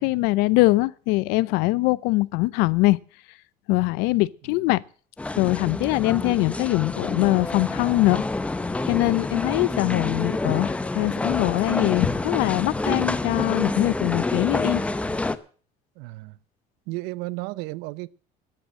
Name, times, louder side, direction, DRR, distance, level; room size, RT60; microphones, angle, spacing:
voice 1, 0.0-3.0 3.7-4.8 5.4-8.3 8.9-14.8, left 21 dB, 90° left, 0.6 m, -22 dB
sound 1, 5.2-15.4, left 2 dB, 10° left, 0.7 m, -28 dB
voice 2, 16.0-16.4 16.9-18.1, right 21 dB, 85° right, 0.6 m, -34 dB
12.0 x 8.9 x 8.2 m
cardioid pair, 160°, 16 cm